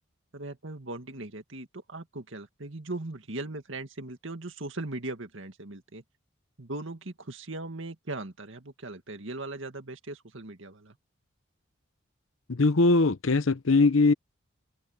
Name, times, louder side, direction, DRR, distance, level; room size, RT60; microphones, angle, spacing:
voice 1, 0.3-6.0 6.6-11.0, right 2 dB, 70° right, 2.0 m, -39 dB
voice 2, 12.5-14.1, left 3 dB, 75° left, 0.9 m, -21 dB
head